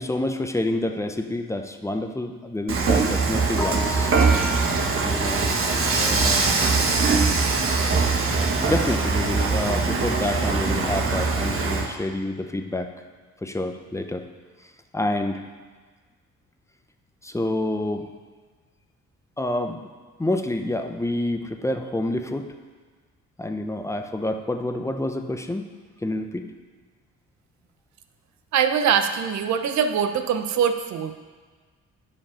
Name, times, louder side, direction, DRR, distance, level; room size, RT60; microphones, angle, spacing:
voice 1, 0.0-4.4 4.9-5.5 5.9-6.5 8.6-12.9 13.4-14.2 14.9-15.4 17.2-18.1 19.4-19.9 20.2-22.5 23.4-25.7 26.0-26.5, left 1 dB, 10° left, 6 dB, 0.7 m, -28 dB
Dishes pots and pans / Frying (food), 2.7-11.9, right 4 dB, 45° right, 1.3 m, -22 dB
voice 2, 28.5-31.2, right 7 dB, 65° right, 8 dB, 0.8 m, -23 dB
10.0 x 5.2 x 5.7 m, 1.5 s
cardioid pair, 90°, 30 cm